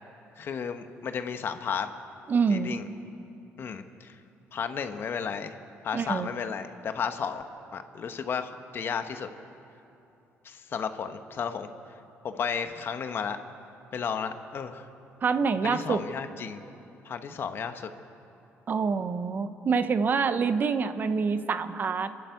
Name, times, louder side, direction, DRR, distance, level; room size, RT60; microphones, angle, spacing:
voice 1, 0.4-1.9 2.5-2.9 3.6-4.2 4.5-5.6 5.8-7.4 7.7-9.3 10.4-12.0 12.2-13.4 13.9-14.9 15.6-16.6 17.0-17.9, left 6 dB, 50° left, 8 dB, 1.2 m, -33 dB
voice 2, 2.3-2.7 5.9-6.3 15.2-16.0 18.7-22.1, right 5 dB, 40° right, 11 dB, 0.9 m, -26 dB
27.0 x 11.5 x 8.3 m, 2.8 s
cardioid pair, 105°, 5 cm